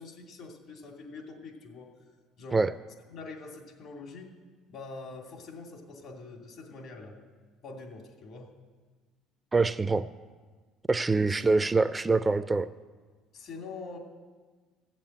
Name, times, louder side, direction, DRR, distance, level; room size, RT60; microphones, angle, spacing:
voice 1, 0.0-1.9 2.4-2.6 3.1-4.3 4.7-7.3 7.6-8.5 11.2-11.6 13.3-14.0, left 3 dB, 60° left, 2 dB, 2.6 m, -44 dB
voice 2, 9.5-10.1 10.9-12.7, right 3 dB, 20° right, 13 dB, 0.4 m, -24 dB
14.5 x 7.4 x 9.0 m, 1.4 s
supercardioid pair, 95°, 0 cm